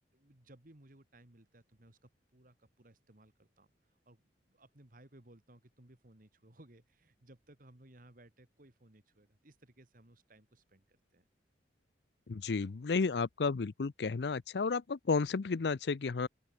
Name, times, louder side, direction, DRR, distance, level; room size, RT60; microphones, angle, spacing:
voice 1, 0.1-11.2, right 1 dB, 50° right, 2.2 m, -61 dB
voice 2, 12.3-16.3, left 4 dB, 65° left, 0.5 m, -32 dB
open air
head